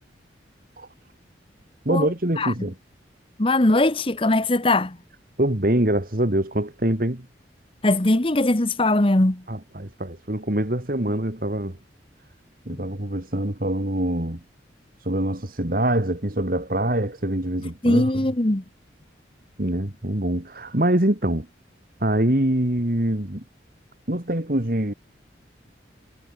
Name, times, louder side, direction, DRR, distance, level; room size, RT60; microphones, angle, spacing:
voice 1, 1.9-2.7 5.4-7.3 9.5-11.8 12.7-14.4 15.0-18.1 19.6-21.5 22.0-23.4 24.1-24.9, right 1 dB, 50° right, 2.3 m, -24 dB
voice 2, 3.4-5.0 7.8-9.4 12.7-12.8 17.8-18.6, left 2 dB, 30° left, 1.1 m, -20 dB
head